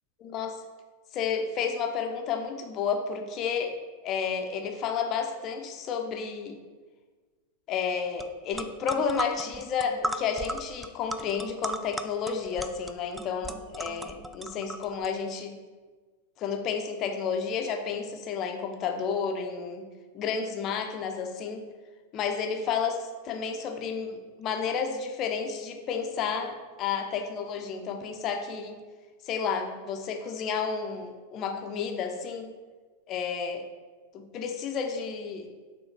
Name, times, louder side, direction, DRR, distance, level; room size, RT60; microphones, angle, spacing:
voice 1, 0.2-0.6 1.1-3.7 4.0-6.6 7.7-15.5 16.4-19.9 20.1-21.6 22.1-28.8 29.3-32.5 33.1-33.6 34.1-35.5, left 6 dB, 35° left, 4 dB, 0.7 m, -31 dB
sound 1, 8.2-8.3 8.5-15.1, right 1 dB, 5° right, 0.3 m, -36 dB
6.3 x 3.5 x 4.6 m, 1.4 s
figure-of-eight pair, 90°, 0 cm